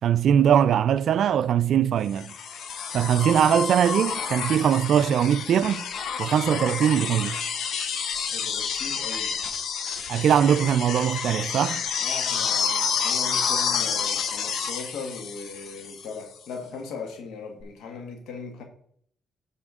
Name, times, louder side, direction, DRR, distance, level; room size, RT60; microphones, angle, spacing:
voice 1, 0.0-2.3 2.9-5.8 6.2-7.4 10.1-11.8, right 9 dB, 65° right, 0.3 m, -21 dB
sound 1, 2.1-16.2 17.6-17.7, left 6 dB, 70° left, 0.8 m, -29 dB
voice 2, 8.3-9.4 12.0-18.6, left 4 dB, 85° left, 1.4 m, -38 dB
11.5 x 4.3 x 3.7 m
cardioid pair, 90°, 0 cm